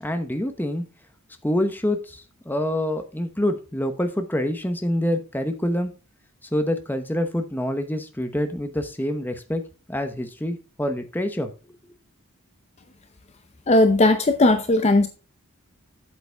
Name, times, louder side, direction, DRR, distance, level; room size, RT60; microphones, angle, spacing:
voice 1, 0.0-0.8 1.4-5.9 6.5-9.6 9.9-11.5, left 1 dB, 10° left, 7 dB, 1.0 m, -26 dB
voice 2, 13.7-15.1, left 2 dB, 30° left, 8 dB, 0.7 m, -17 dB
8.1 x 7.9 x 3.4 m, 0.33 s
head